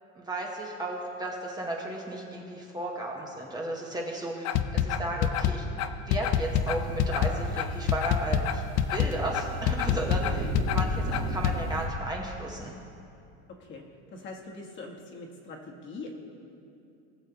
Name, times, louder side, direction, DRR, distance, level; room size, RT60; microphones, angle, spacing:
voice 1, 0.2-5.6 6.1-8.6 8.9-12.7, right 1 dB, 10° right, -2 dB, 1.0 m, -34 dB
sound 1, 4.4-11.6, left 9 dB, 55° left, 0.6 m, -26 dB
sound 2, 6.4-11.9, right 1 dB, 80° right, 1.6 m, -35 dB
voice 2, 14.1-15.6 15.8-16.3, left 3 dB, 35° left, 0 dB, 1.4 m, -42 dB
20.0 x 6.9 x 2.9 m, 2.6 s
cardioid pair, 145°, 32 cm